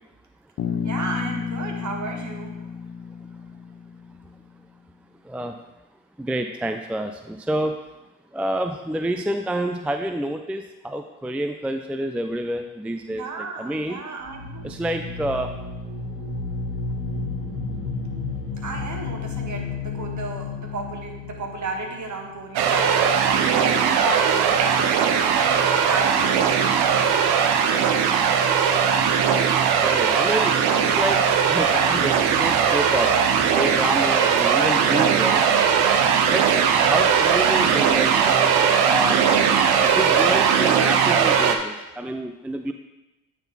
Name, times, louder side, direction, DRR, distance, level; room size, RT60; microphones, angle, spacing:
Bass guitar, 0.6-4.5, left 7 dB, 50° left, 0.8 m, -31 dB
voice 1, 0.8-2.5 13.1-14.8 18.6-25.0 25.4-26.8, right 3 dB, 45° right, 2 dB, 1.6 m, -33 dB
voice 2, 5.2-5.6 6.2-7.8 8.3-14.0 14.6-15.5 29.6-33.1 33.5-35.4 36.3-38.5 38.8-39.2 39.6-42.7, right 1 dB, 5° right, 6 dB, 0.4 m, -28 dB
sound 1, 14.2-22.9, left 3 dB, 85° left, 1.6 m, -32 dB
sound 2, 22.6-41.6, right 7 dB, 75° right, 0.7 m, -19 dB
8.8 x 4.2 x 4.1 m, 0.98 s
supercardioid pair, 60°, 38 cm